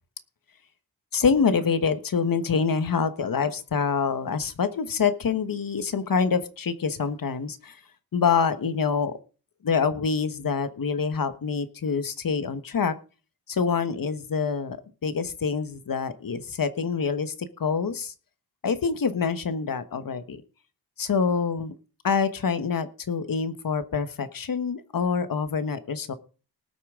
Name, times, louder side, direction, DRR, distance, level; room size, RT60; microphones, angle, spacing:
voice 1, 1.1-7.8 8.1-9.1 9.6-12.9 13.5-14.8 15.0-17.3 17.6-18.1 18.6-20.4 21.0-21.7 22.0-26.1, left 5 dB, 60° left, 11 dB, 1.3 m, -26 dB
19.0 x 8.4 x 3.7 m, 0.35 s
wide cardioid pair, 140°, 39 cm